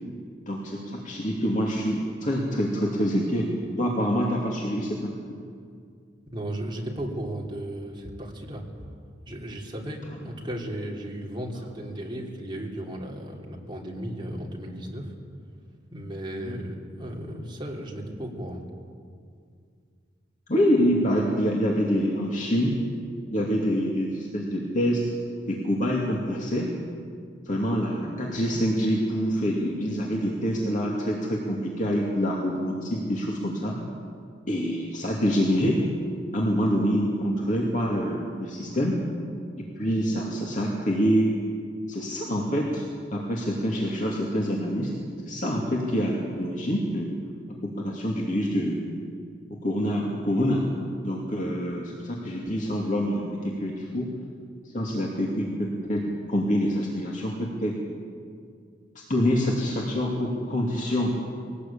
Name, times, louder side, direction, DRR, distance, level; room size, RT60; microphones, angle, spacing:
voice 1, 0.5-3.5 3.8-5.4 16.4-16.6 20.5-22.7 23.3-25.0 25.5-26.7 27.5-33.7 34.5-35.8 36.3-39.0 39.6-41.3 41.9-42.9 43.1-44.9 45.2-47.1 47.5-48.8 49.5-50.6 51.0-54.1 54.6-57.7 59.1-61.1, equal, 45° left, -2 dB, 2.6 m, -26 dB
voice 2, 6.3-8.6 9.3-10.0 10.2-15.1 15.9-18.6, right 1 dB, 25° right, -1 dB, 3.2 m, -35 dB
22.0 x 18.0 x 8.7 m, 2.2 s
head